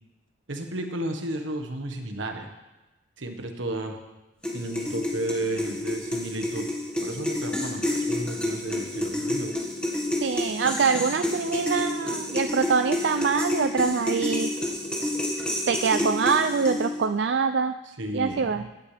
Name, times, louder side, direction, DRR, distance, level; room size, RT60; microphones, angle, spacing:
voice 1, 0.5-2.5 3.2-4.0 4.5-6.7 7.0-9.6 18.0-18.6, right 1 dB, 85° right, 4 dB, 1.5 m, -33 dB
sound 1, 4.4-17.1, left 1 dB, 5° left, 1.7 m, -29 dB
voice 2, 10.2-14.5 15.7-17.8 18.1-18.7, right 5 dB, 65° right, 9 dB, 0.4 m, -24 dB
17.0 x 11.0 x 3.5 m, 1.1 s
head